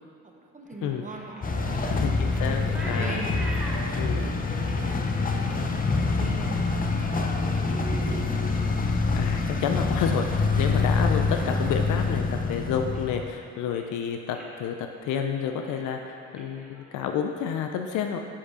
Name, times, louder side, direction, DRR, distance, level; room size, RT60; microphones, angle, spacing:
voice 1, 0.2-2.0 2.5-4.3 4.6-7.1 7.4-8.4 10.6-10.8, right 2 dB, 25° right, 1 dB, 0.9 m, -42 dB
sound 1, 0.7-7.3 7.7-8.1 8.4-10.9 11.2-11.6 12.0-12.1 12.5-13.3 13.6-14.0 14.3-14.5 14.9-15.2 15.5-17.4, equal, 5° right, 1.4 m, -44 dB
sound 2, 1.4-13.3, left 3 dB, 30° left, 0.6 m, -26 dB
voice 2, 1.9-3.2 3.9-4.3 9.2-18.2, left 7 dB, 85° left, 4 dB, 0.5 m, -30 dB
7.1 x 4.6 x 4.9 m, 2.4 s
cardioid pair, 90°, 30 cm